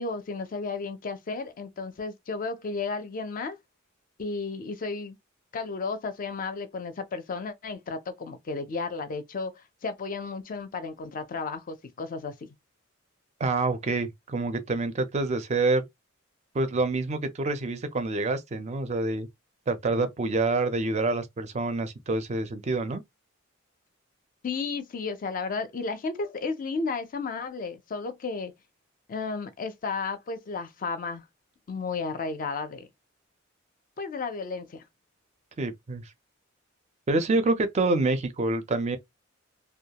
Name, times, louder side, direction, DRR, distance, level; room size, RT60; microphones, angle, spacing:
voice 1, 0.0-3.6 4.2-5.2 5.5-12.3 24.4-28.5 29.1-31.2 31.7-32.9 34.0-34.8, left 4 dB, 40° left, 0.4 m, -33 dB
voice 2, 13.4-15.8 16.5-19.3 19.7-23.0 35.6-36.0 37.1-39.0, right 3 dB, 35° right, 0.4 m, -27 dB
2.2 x 2.1 x 2.8 m
head